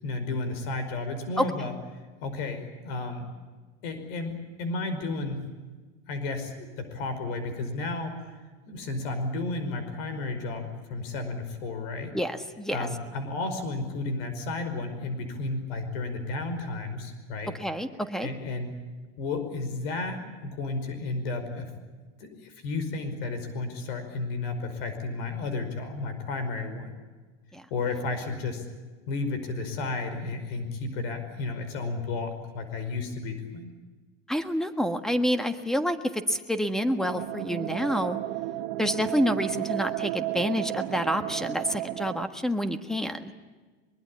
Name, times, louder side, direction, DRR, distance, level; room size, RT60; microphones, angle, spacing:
voice 1, 0.0-1.7 2.2-3.2 3.8-5.5 6.1-8.4 8.7-12.1 12.7-17.5 18.2-18.8 19.2-21.7 22.2-26.9 27.7-28.7 29.1-33.7, left 3 dB, 70° left, 8 dB, 5.2 m, -32 dB
voice 2, 12.1-12.9 17.6-18.3 27.5-27.6 34.3-38.2 38.8-43.3, equal, ahead, 8 dB, 1.5 m, -28 dB
sound 1, 37.0-42.2, right 17 dB, 55° right, 1.3 m, -33 dB
23.0 x 23.0 x 8.7 m, 1.3 s
supercardioid pair, 160°, 31 cm